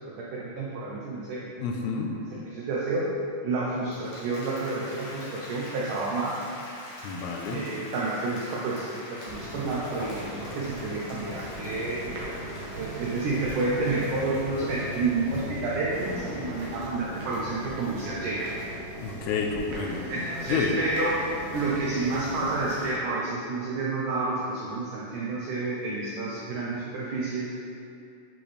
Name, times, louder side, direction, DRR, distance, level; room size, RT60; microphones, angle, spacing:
voice 1, 0.3-1.4 2.4-3.1 3.4-6.4 7.5-12.1 12.8-18.5 20.1-21.2 21.5-27.5, right 3 dB, 85° right, -5 dB, 1.8 m, -30 dB
voice 2, 1.6-2.2 7.0-7.6 19.0-20.0 20.4-20.8, left 5 dB, 85° left, 1 dB, 2.7 m, -29 dB
Applause, 3.7-16.8, left 1 dB, 60° left, 2.6 m, -45 dB
sound 1, 9.3-22.9, right 1 dB, 65° right, 2.8 m, -39 dB
11.0 x 4.4 x 3.3 m, 2.6 s
omnidirectional pair, 4.7 m